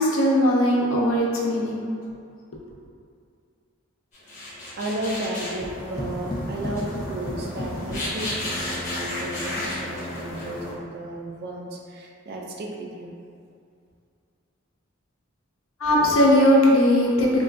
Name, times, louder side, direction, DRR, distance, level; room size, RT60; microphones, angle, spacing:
voice 1, 0.0-2.0 15.8-17.4, left 1 dB, 80° left, -3 dB, 0.5 m, -19 dB
sound 1, 4.1-10.7, left 1 dB, 35° left, 0.8 m, -33 dB
voice 2, 4.8-13.1, right 1 dB, 55° right, -1 dB, 0.4 m, -33 dB
sound 2, 5.6-8.8, equal, 20° left, 0.3 m, -34 dB
3.7 x 2.3 x 2.4 m, 2.4 s
head